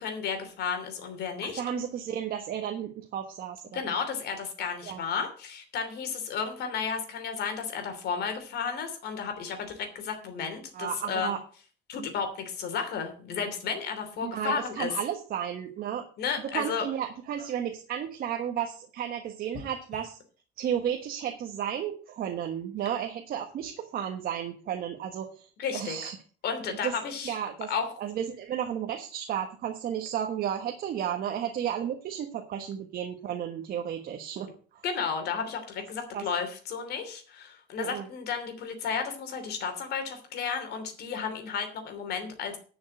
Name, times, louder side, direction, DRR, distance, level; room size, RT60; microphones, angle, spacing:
voice 1, 0.0-1.6 3.7-11.3 11.9-14.9 16.2-16.8 25.6-26.1 26.4-27.4 27.7-27.9 34.8-42.6, left 6 dB, 50° left, 6 dB, 3.0 m, -33 dB
voice 2, 1.4-3.9 4.8-5.0 10.7-11.4 14.2-16.0 16.5-20.2 20.6-26.2 26.7-26.9 27.2-27.7 28.0-34.8 36.1-36.2 37.8-38.0, right 9 dB, 45° right, 4 dB, 1.3 m, -33 dB
11.0 x 6.3 x 7.8 m, 0.41 s
cardioid pair, 175°, 21 cm